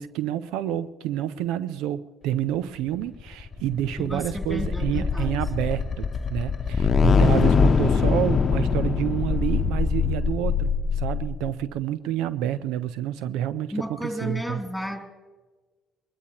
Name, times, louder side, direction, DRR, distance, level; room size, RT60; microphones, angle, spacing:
voice 1, 0.0-14.6, right 11 dB, 65° right, 16 dB, 0.5 m, -29 dB
sound 1, 3.2-11.6, left 5 dB, 40° left, 0.9 m, -23 dB
voice 2, 4.0-5.4 13.7-15.0, equal, ahead, 4 dB, 2.8 m, -33 dB
21.5 x 21.0 x 2.9 m, 1.3 s
hypercardioid pair, 50°, 0 cm